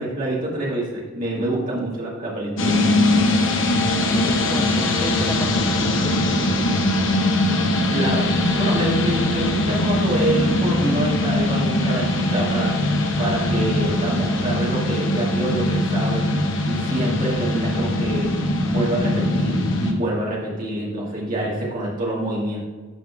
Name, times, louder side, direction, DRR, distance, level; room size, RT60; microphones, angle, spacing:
voice 1, 0.0-2.8 7.9-12.9 13.2-16.3 16.6-18.4 18.7-22.6, right 1 dB, 45° right, -5 dB, 2.2 m, -26 dB
sound 1, 2.6-19.9, left 1 dB, 80° left, 1.0 m, -21 dB
voice 2, 4.1-6.9, left 1 dB, 15° left, 5 dB, 0.4 m, -33 dB
11.5 x 3.8 x 3.5 m, 1.4 s
head